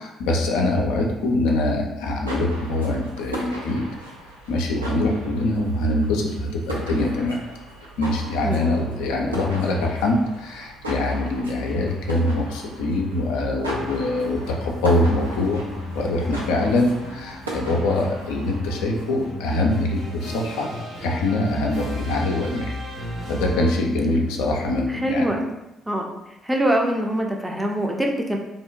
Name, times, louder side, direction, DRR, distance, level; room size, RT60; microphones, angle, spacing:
voice 1, 0.0-3.8 4.5-7.4 8.0-15.6 16.0-20.7 21.0-22.7 23.3-25.3, left 2 dB, 70° left, 0 dB, 0.3 m, -23 dB
sound 1, 2.0-19.3, right 1 dB, 85° right, 0.3 m, -37 dB
sound 2, 13.6-24.1, left 1 dB, 65° right, 0.9 m, -36 dB
voice 2, 24.9-25.5 25.9-26.1 26.4-28.4, right 1 dB, 10° right, 1 dB, 0.5 m, -23 dB
2.6 x 2.1 x 2.4 m, 0.92 s
figure-of-eight pair, 45°, 0 cm